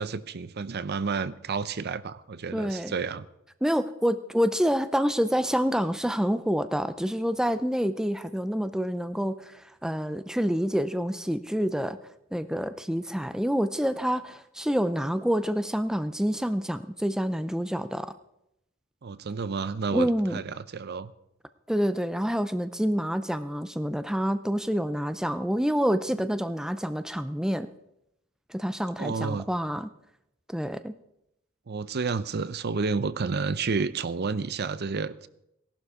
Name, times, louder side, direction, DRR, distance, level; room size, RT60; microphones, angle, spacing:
voice 1, 0.0-3.3 19.0-21.1 29.0-29.5 31.7-35.3, right 4 dB, 50° right, 15 dB, 0.6 m, -30 dB
voice 2, 2.5-2.9 3.6-12.0 12.3-18.1 19.9-20.4 21.7-27.7 28.5-29.9 30.5-30.9, equal, 5° right, 12 dB, 0.4 m, -27 dB
17.5 x 11.5 x 4.8 m, 0.82 s
head